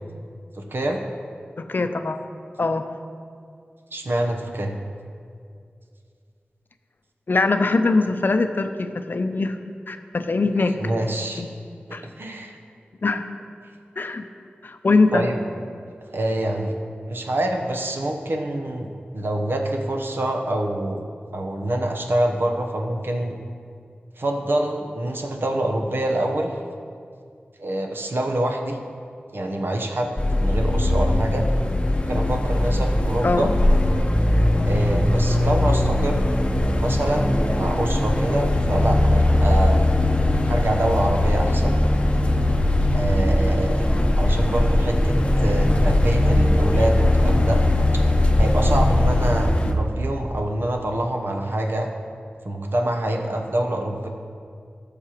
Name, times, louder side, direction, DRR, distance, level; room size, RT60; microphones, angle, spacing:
voice 1, 0.5-1.0 3.9-4.7 10.8-11.4 12.2-12.6 15.1-15.5 16.1-16.7 17.1-18.9 19.1-23.4 24.2-26.5 27.6-28.8 29.3-30.1 30.4-31.4 32.1-33.5 34.6-36.3 36.8-39.8 40.4-41.8 42.9-43.9 44.2-47.6 47.9-48.0 48.4-51.9 52.4-54.1, right 1 dB, 65° right, 2 dB, 0.9 m, -25 dB
voice 2, 1.6-2.2 2.6-2.8 7.3-9.6 9.9-10.8 11.4-11.5 11.9-12.0 13.0-13.3 14.0-14.2 14.6-15.3 33.2-33.5 43.9-44.1, left 3 dB, 60° left, 8 dB, 0.5 m, -22 dB
sound 1, 30.2-49.7, left 1 dB, 30° left, 0.8 m, -20 dB
14.0 x 6.7 x 3.0 m, 2.3 s
wide cardioid pair, 55°, 4 cm